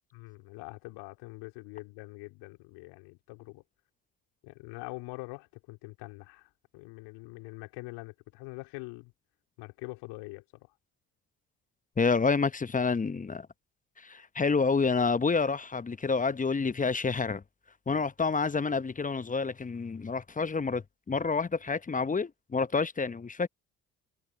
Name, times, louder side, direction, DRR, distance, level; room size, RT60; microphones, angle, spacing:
voice 1, 0.1-3.6 4.4-9.1 9.6-10.4, left 24 dB, 70° left, 4.2 m, -44 dB
voice 2, 12.0-13.5 14.0-17.4 17.9-23.5, left 4 dB, 20° left, 0.9 m, -28 dB
figure-of-eight pair, 50°, 43 cm